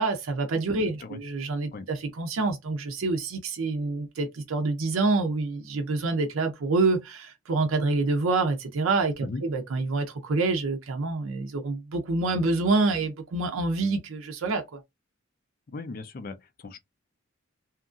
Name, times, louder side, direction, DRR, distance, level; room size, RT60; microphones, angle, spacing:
voice 1, 0.0-14.8, right 3 dB, 85° right, 0.5 m, -27 dB
voice 2, 0.8-1.2 1.7-1.9 9.2-9.4 15.7-16.8, left 3 dB, 45° left, 0.4 m, -38 dB
2.8 x 2.4 x 2.5 m
head